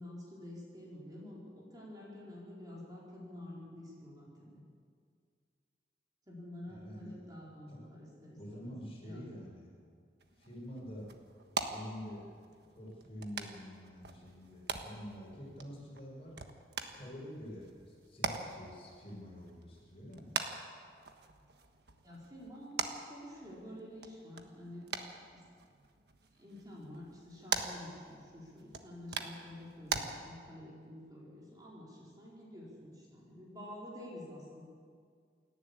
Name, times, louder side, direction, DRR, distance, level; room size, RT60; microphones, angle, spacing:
voice 1, 0.0-4.6 6.3-8.7 9.0-9.3 22.0-22.8 23.1-24.9 25.3-25.4 26.4-34.6, left 1 dB, 20° right, -5 dB, 4.6 m, -49 dB
voice 2, 6.7-7.2 7.7-7.8 8.4-9.7 10.4-11.1 11.7-12.3 12.7-16.3 16.9-20.4, equal, 35° left, -3 dB, 6.0 m, -47 dB
sound 1, 10.2-30.0, right 5 dB, 70° right, 1.4 m, -43 dB
28.0 x 11.5 x 8.5 m, 2.1 s
head